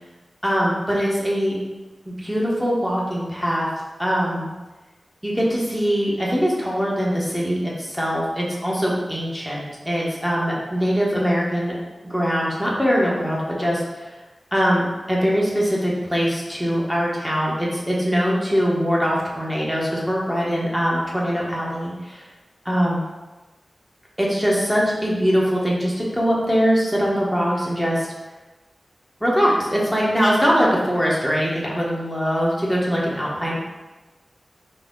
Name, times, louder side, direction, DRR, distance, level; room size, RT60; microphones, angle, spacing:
voice 1, 0.4-1.6 2.2-3.7 4.0-4.5 5.2-11.7 12.1-14.1 14.5-22.2 22.6-23.0 24.2-28.1 29.2-33.5, equal, ahead, -5 dB, 1.1 m, -22 dB
4.1 x 2.3 x 3.8 m, 1.2 s
wide cardioid pair, 65°, 0 cm